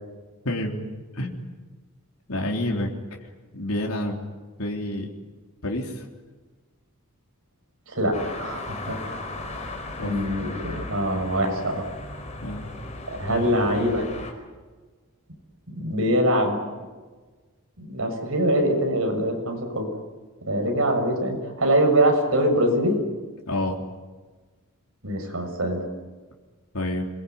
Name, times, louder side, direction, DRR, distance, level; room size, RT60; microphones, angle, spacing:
voice 1, 0.4-0.9 1.1-1.4 2.3-2.9 3.5-4.2 4.6-5.1 5.6-6.1 10.0-10.1 12.4-12.7 13.3-13.5 23.5-23.8 26.7-27.1, left 1 dB, 85° left, 0 dB, 3.6 m, -28 dB
voice 2, 7.9-9.2 10.0-11.8 13.1-14.1 15.7-16.6 17.8-19.9 20.5-23.0 25.0-25.8, right 1 dB, 70° right, 4 dB, 6.8 m, -23 dB
sound 1, 8.1-14.3, left 2 dB, 30° left, 5.0 m, -36 dB
27.0 x 22.0 x 9.5 m, 1.3 s
head